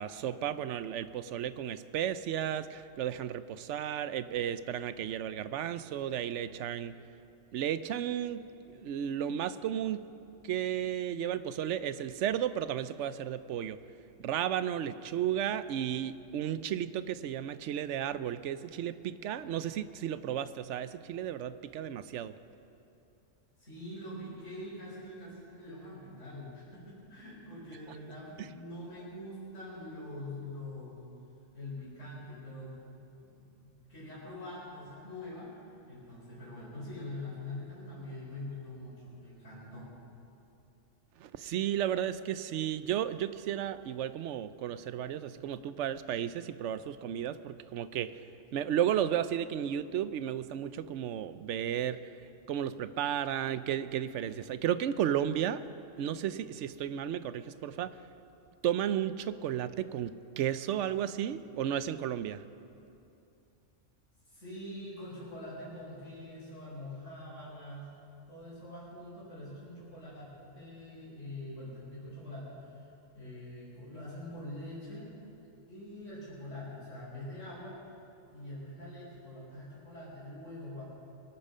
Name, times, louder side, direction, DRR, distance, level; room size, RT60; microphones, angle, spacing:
voice 1, 0.0-6.9 7.5-10.0 10.4-13.8 14.2-22.4 41.2-48.2 48.5-52.1 52.5-55.6 56.0-57.9 58.6-62.4, right 10 dB, 75° right, 14 dB, 0.9 m, -33 dB
voice 2, 23.6-31.0 31.5-32.9 33.2-33.5 33.8-39.9 64.3-67.9 68.3-72.8 73.1-75.1 75.7-77.8 78.3-80.8, left 1 dB, 80° left, -8 dB, 4.8 m, -44 dB
23.0 x 8.9 x 5.4 m, 2.7 s
omnidirectional pair, 1.3 m